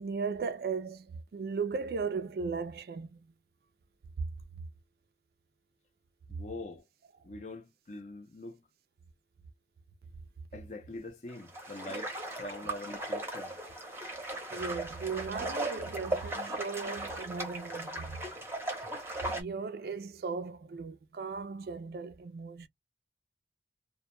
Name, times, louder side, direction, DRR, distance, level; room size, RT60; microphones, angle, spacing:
voice 1, 0.0-3.2 4.6-4.7 14.5-18.2 19.3-22.7, right 5 dB, 55° right, 0.3 m, -37 dB
voice 2, 6.3-6.8 7.2-8.6 10.5-13.5, left 2 dB, 40° left, 0.5 m, -44 dB
sound 1, 11.3-19.4, right 2 dB, 15° right, 0.7 m, -37 dB
2.1 x 2.1 x 3.0 m
head